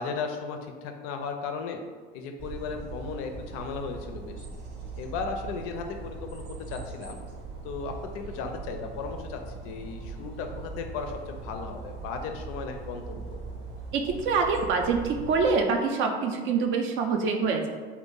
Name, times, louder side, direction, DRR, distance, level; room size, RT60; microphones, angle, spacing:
voice 1, 0.0-1.8 2.1-4.5 5.0-7.2 7.6-13.4, left 5 dB, 50° left, 4 dB, 0.4 m, -36 dB
sound 1, 2.4-15.6, right 4 dB, 60° right, 0.7 m, -40 dB
voice 2, 13.9-17.7, right 4 dB, 40° right, 4 dB, 0.4 m, -25 dB
2.6 x 2.3 x 3.7 m, 1.5 s
figure-of-eight pair, 65°, 30 cm